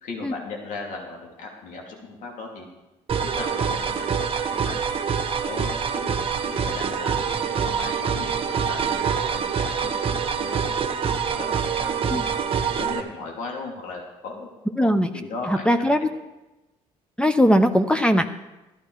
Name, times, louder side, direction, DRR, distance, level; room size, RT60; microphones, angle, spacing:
voice 1, 0.0-2.7 3.2-4.8 5.4-10.8 11.3-12.5 12.7-14.5 14.8-15.9, left 3 dB, 75° left, 0 dB, 2.9 m, -37 dB
sound 1, 3.1-13.0, right 6 dB, 45° right, 1.3 m, -25 dB
voice 2, 14.8-15.1 15.5-16.1 17.2-18.3, equal, 5° left, 8 dB, 0.9 m, -19 dB
13.0 x 12.0 x 4.8 m, 1.0 s
supercardioid pair, 75°, 13 cm